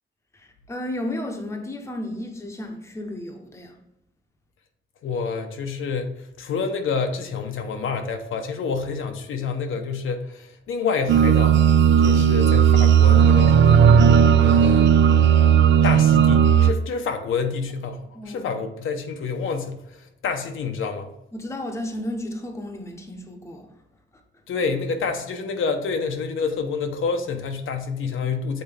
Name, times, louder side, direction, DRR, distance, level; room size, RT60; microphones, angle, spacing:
voice 1, 0.3-3.8 18.1-18.5 21.3-23.7, left 1 dB, 15° left, 0.7 m, -33 dB
voice 2, 5.0-11.6 12.0-13.8 14.4-14.9 15.8-21.1 24.5-28.6, left 5 dB, 85° left, 0.8 m, -28 dB
sound 1, 11.1-16.7, right 8 dB, 65° right, 0.4 m, -15 dB
7.9 x 3.9 x 3.3 m
wide cardioid pair, 175°, 20 cm